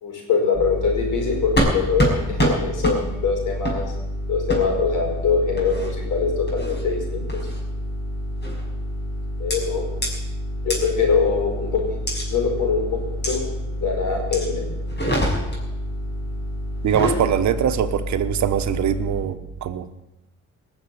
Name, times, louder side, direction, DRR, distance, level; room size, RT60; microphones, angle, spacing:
voice 1, 0.0-3.8 4.3-7.4 9.4-9.9 10.6-11.8 12.3-13.0 13.2-13.4 13.8-14.6, left 5 dB, 85° left, 1 dB, 5.0 m, -23 dB
sound 1, 0.5-19.2, equal, 15° left, 7.4 m, -30 dB
sound 2, 1.6-1.7 2.0-2.1 2.4-2.5 2.8-3.0 3.6-3.8 4.5-4.6 5.6-5.9 6.5-6.8 7.3-7.6 8.4-8.7 9.5-9.6 10.0-10.1 10.7-10.8 12.1-12.2 13.2-13.4 14.3-14.5 14.9-15.6 16.8-17.2, equal, 35° left, 5.9 m, -24 dB
voice 2, 16.8-19.9, right 9 dB, 65° right, 10 dB, 1.2 m, -22 dB
19.0 x 7.3 x 8.4 m, 0.93 s
cardioid pair, 90°, 30 cm